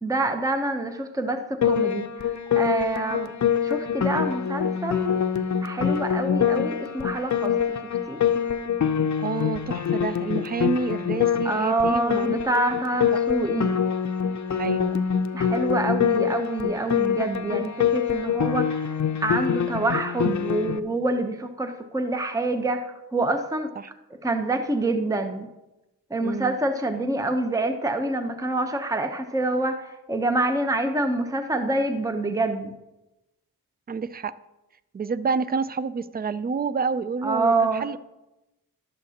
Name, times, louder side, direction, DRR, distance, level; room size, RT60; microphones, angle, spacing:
voice 1, 0.0-3.3 3.6-5.1 5.6-7.8 8.1-8.2 11.4-13.7 15.3-23.7 24.2-25.5 26.1-32.7 37.2-37.8, right 2 dB, 10° right, 7 dB, 0.7 m, -26 dB
Piano, 1.6-20.8, left 8 dB, 45° left, 0.6 m, -25 dB
voice 2, 9.2-12.6 14.6-15.0 23.8-23.9 26.2-26.6 33.9-34.3 34.9-38.0, right 5 dB, 25° right, 16 dB, 0.3 m, -29 dB
11.5 x 7.7 x 2.8 m, 0.98 s
cardioid pair, 60°, 40 cm